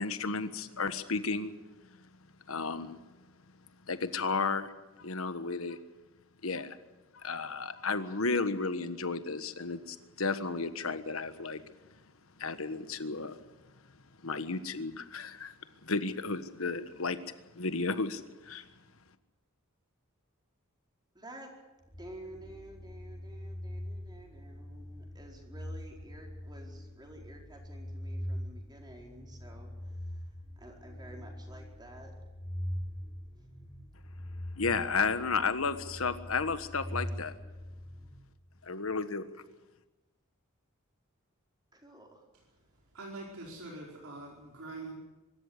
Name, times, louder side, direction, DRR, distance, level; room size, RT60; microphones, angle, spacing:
voice 1, 0.0-1.5 2.5-3.0 3.9-4.7 5.0-5.8 6.4-6.8 7.1-11.6 12.4-13.4 14.2-15.5 15.8-17.2 17.5-18.7 34.6-37.3 38.6-39.2, left 4 dB, 75° left, 1.4 m, -33 dB
voice 2, 21.1-21.5 22.0-32.1 33.4-33.5 41.7-42.5, right 1 dB, 20° right, 4.7 m, -51 dB
sound 1, 21.8-38.7, equal, 20° left, 3.4 m, -43 dB
voice 3, 42.9-44.9, right 2 dB, 90° right, 4.7 m, -44 dB
24.5 x 13.5 x 9.7 m
head